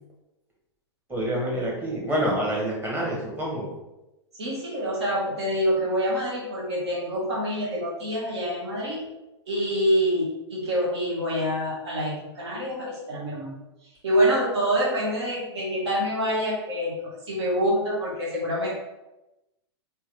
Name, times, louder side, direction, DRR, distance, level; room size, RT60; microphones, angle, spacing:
voice 1, 1.1-3.7, right 1 dB, 15° right, -4 dB, 1.3 m, -27 dB
voice 2, 4.4-9.1 9.5-13.5 14.0-18.7, equal, 65° right, -4 dB, 1.4 m, -26 dB
3.5 x 2.9 x 3.3 m, 0.97 s
figure-of-eight pair, 100°, 15 cm